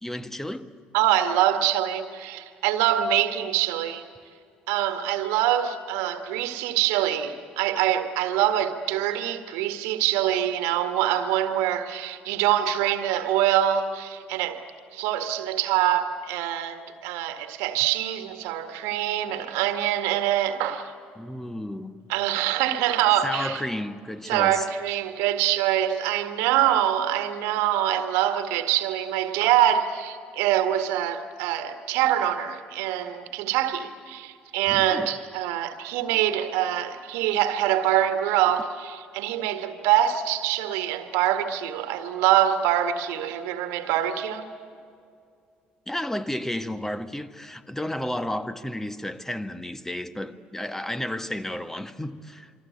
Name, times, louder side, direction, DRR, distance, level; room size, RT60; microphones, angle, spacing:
voice 1, 0.0-0.7 21.1-22.0 23.2-24.7 34.7-35.1 45.9-52.5, left 1 dB, 10° left, 1.5 m, -32 dB
voice 2, 0.9-4.0 4.7-14.6 14.9-20.9 22.1-23.6 24.3-44.5, right 11 dB, 70° right, 1.8 m, -24 dB
27.5 x 25.5 x 8.4 m
hypercardioid pair, 55°, 5 cm